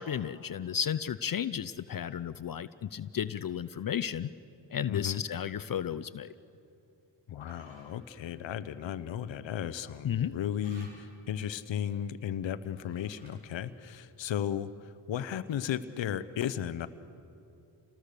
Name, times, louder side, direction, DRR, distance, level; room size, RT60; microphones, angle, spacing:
voice 1, 0.0-4.3 4.7-6.3 10.0-10.4, left 9 dB, 50° left, 15 dB, 0.6 m, -33 dB
voice 2, 4.9-5.2 7.3-16.9, left 9 dB, 75° left, 14 dB, 0.9 m, -35 dB
sound 1, 7.4-7.9 10.6-11.2 12.7-13.5, right 1 dB, 90° right, 6.5 m, -57 dB
28.0 x 19.5 x 6.8 m, 2.7 s
cardioid pair, 55°, 45 cm